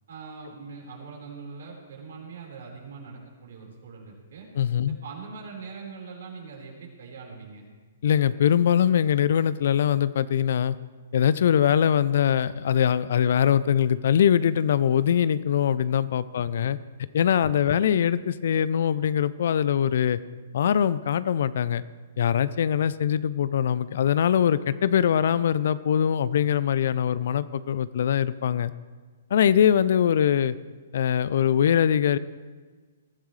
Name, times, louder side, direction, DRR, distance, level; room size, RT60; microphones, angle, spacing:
voice 1, 0.1-4.5 4.9-7.7 16.4-16.5, right 5 dB, 65° right, -1 dB, 4.7 m, -42 dB
voice 2, 4.6-5.0 8.0-10.7 11.1-16.8 17.1-20.2 20.5-21.8 22.2-28.7 29.3-30.6 30.9-32.2, left 9 dB, 60° left, 17 dB, 0.5 m, -22 dB
22.5 x 13.5 x 3.3 m, 1.4 s
figure-of-eight pair, 120°, 0 cm